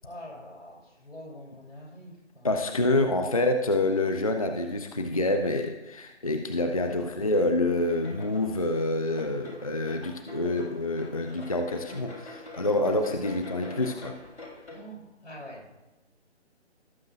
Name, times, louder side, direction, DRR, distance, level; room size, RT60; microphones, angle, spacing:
voice 1, 0.0-2.5 2.9-3.3 6.7-7.0 13.0-13.2 14.7-15.9, equal, 90° left, -1 dB, 3.5 m, -45 dB
voice 2, 2.4-14.2, left 2 dB, 30° left, 6 dB, 0.5 m, -27 dB
sound 1, 7.8-14.8, left 2 dB, 70° left, 3.6 m, -45 dB
17.5 x 7.3 x 2.5 m, 1.0 s
figure-of-eight pair, 165°, 34 cm